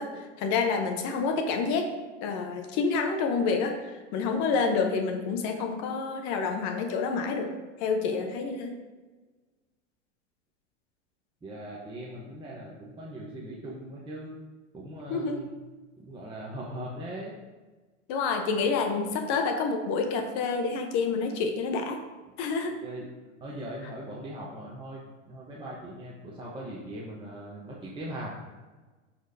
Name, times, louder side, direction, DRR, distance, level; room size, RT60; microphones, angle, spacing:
voice 1, 0.0-1.9 2.2-8.8 15.1-15.4 18.1-22.0 22.4-22.8, left 4 dB, 50° left, 5 dB, 1.0 m, -28 dB
voice 2, 11.4-14.3 14.7-15.5 16.0-17.3 22.8-23.0 23.4-25.0 25.3-28.3, right 1 dB, 15° right, -5 dB, 1.1 m, -40 dB
12.0 x 4.4 x 2.8 m, 1.3 s
hypercardioid pair, 105°, 37 cm